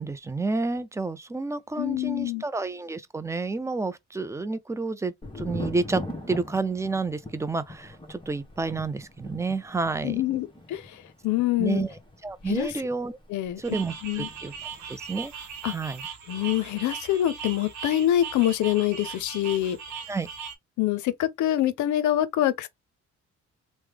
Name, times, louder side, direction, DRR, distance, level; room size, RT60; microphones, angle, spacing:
voice 1, 0.0-10.2 11.6-13.2 13.6-14.5 14.9-15.3 15.6-16.1 20.1-20.3, right 3 dB, 10° right, 0.4 m, -30 dB
voice 2, 1.8-2.4 10.0-11.8 12.5-12.7 13.3-13.6 14.0-14.3 15.6-15.7 16.3-19.8 20.8-22.7, left 13 dB, 75° left, 0.6 m, -25 dB
Thunder, 5.2-14.9 15.1-15.8, left 1 dB, 15° left, 0.9 m, -41 dB
sound 1, 13.6-20.6, right 6 dB, 70° right, 0.9 m, -39 dB
3.2 x 2.1 x 3.3 m
cardioid pair, 90°, 30 cm